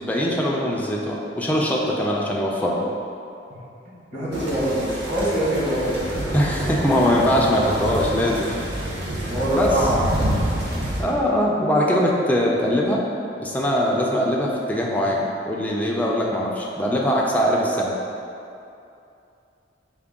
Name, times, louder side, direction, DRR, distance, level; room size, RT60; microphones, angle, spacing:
voice 1, 0.0-2.8 6.3-8.5 9.5-9.7 11.0-13.0 13.4-18.0, equal, 10° left, -3 dB, 0.3 m, -22 dB
voice 2, 4.1-6.3 7.1-7.2 9.3-10.0 10.4-10.9, right 1 dB, 35° right, -9 dB, 1.2 m, -24 dB
sound 1, 4.3-11.0, right 1 dB, 65° right, 0.8 m, -28 dB
4.6 x 2.2 x 3.5 m, 2.6 s
head